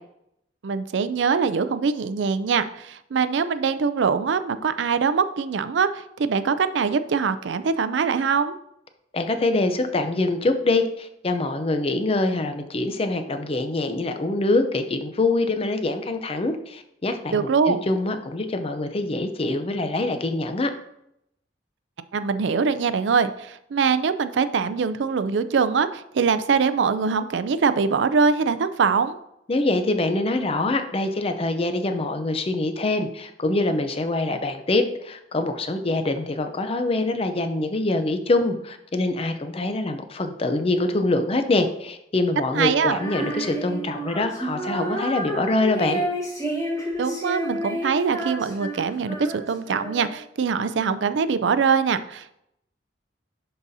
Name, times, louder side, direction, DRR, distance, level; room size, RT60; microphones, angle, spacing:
voice 1, 0.6-8.6 17.3-17.8 22.1-29.2 42.5-43.0 47.0-52.3, right 5 dB, 75° right, 12 dB, 0.4 m, -23 dB
voice 2, 9.1-20.7 29.5-46.0, left 2 dB, 35° left, 7 dB, 0.6 m, -24 dB
Female singing, 42.9-50.3, right 1 dB, 15° left, 1.5 m, -30 dB
11.0 x 4.0 x 2.7 m, 0.78 s
head